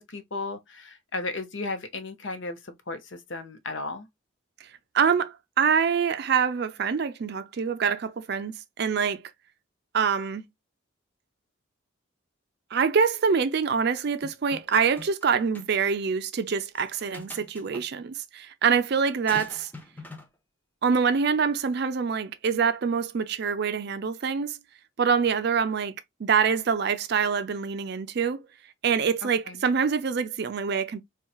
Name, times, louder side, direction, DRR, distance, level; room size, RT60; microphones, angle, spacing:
voice 1, 0.0-4.1 29.2-29.6, left 3 dB, 65° left, 0.8 m, -35 dB
voice 2, 4.9-9.2 9.9-10.4 12.7-19.7 20.8-24.6 25.0-25.9 26.2-28.4 28.8-31.0, right 6 dB, 55° right, 0.4 m, -25 dB
sound 1, 14.2-15.2 15.5-15.7 16.7-17.8 19.3-20.3, left 2 dB, 10° left, 0.5 m, -43 dB
4.1 x 2.3 x 2.3 m
head